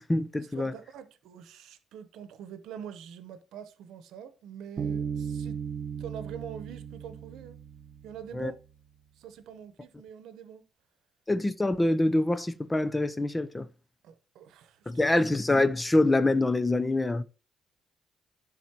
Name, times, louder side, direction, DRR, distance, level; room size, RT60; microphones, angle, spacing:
voice 1, 0.0-0.7 8.3-8.5 11.3-13.7 14.9-17.2, left 2 dB, 15° left, 0.6 m, -25 dB
voice 2, 0.5-5.6 6.0-7.6 8.0-8.6 9.2-10.7 14.0-15.3, right 8 dB, 85° right, 0.9 m, -45 dB
Bass guitar, 4.8-8.5, right 7 dB, 55° right, 0.9 m, -36 dB
12.0 x 4.1 x 2.9 m
cardioid pair, 90°, 0 cm